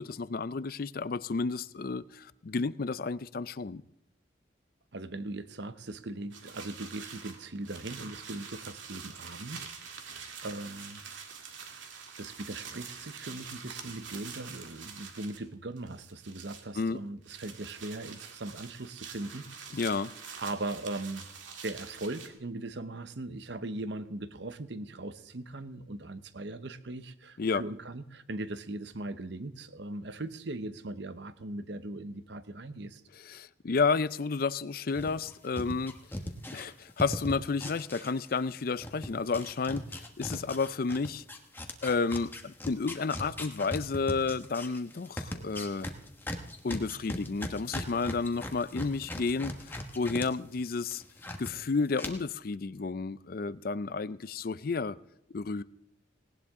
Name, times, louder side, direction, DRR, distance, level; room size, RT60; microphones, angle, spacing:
voice 1, 0.0-3.8 16.8-17.0 19.7-20.1 27.4-27.6 33.3-35.9 36.5-41.2 41.8-45.9 46.6-51.0 51.4-55.0 55.3-55.6, left 4 dB, 50° left, 17 dB, 0.5 m, -31 dB
voice 2, 4.9-9.7 10.0-11.0 12.2-19.7 20.4-21.3 21.6-33.0, right 2 dB, 65° right, 12 dB, 0.9 m, -39 dB
sound 1, 6.3-15.4 15.8-16.9 17.2-22.3, right 6 dB, 80° right, 2.1 m, -46 dB
sound 2, 34.9-38.5 38.8-50.3 50.6-51.5 52.0-52.1, left 1 dB, 10° left, 1.2 m, -39 dB
18.5 x 18.5 x 3.7 m, 0.80 s
head